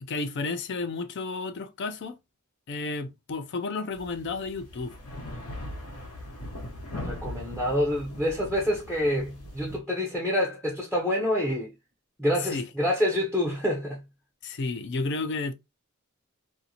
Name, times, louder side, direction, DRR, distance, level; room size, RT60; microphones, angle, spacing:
voice 1, 0.0-2.2 2.7-4.9 12.4-12.7 14.4-15.5, left 3 dB, 55° left, 0.4 m, -32 dB
sound 1, 3.9-9.8, left 1 dB, 85° left, 1.0 m, -40 dB
voice 2, 6.9-11.7 12.2-14.0, left 1 dB, 5° left, 0.5 m, -27 dB
2.6 x 2.5 x 2.7 m
head